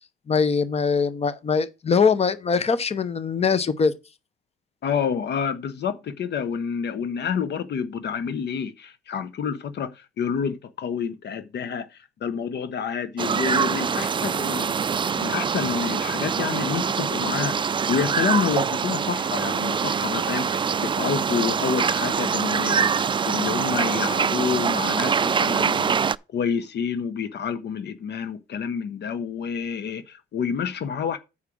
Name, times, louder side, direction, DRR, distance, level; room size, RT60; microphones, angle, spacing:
voice 1, 0.3-3.9, left 5 dB, 30° left, 0.9 m, -22 dB
voice 2, 4.8-14.7 15.2-25.9 26.3-31.2, left 7 dB, 60° left, 0.8 m, -28 dB
sound 1, 13.2-26.2, right 6 dB, 25° right, 0.3 m, -24 dB
7.3 x 4.8 x 6.2 m
cardioid pair, 90°, 20 cm